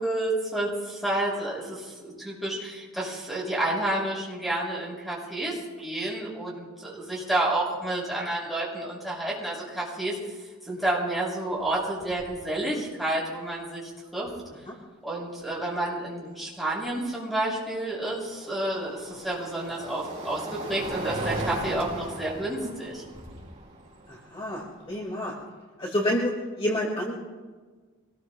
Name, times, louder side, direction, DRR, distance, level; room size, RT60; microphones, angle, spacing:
voice 1, 0.0-10.2 10.6-14.3 15.0-23.0, right 1 dB, ahead, -6 dB, 6.3 m, -30 dB
sound 1, 11.6-11.7 12.0-12.4 14.3-14.4 17.4-25.5, right 1 dB, 35° right, 5.6 m, -37 dB
voice 2, 24.1-25.4 25.8-27.1, equal, 25° left, -2 dB, 2.0 m, -29 dB
25.0 x 20.0 x 2.2 m, 1.4 s
head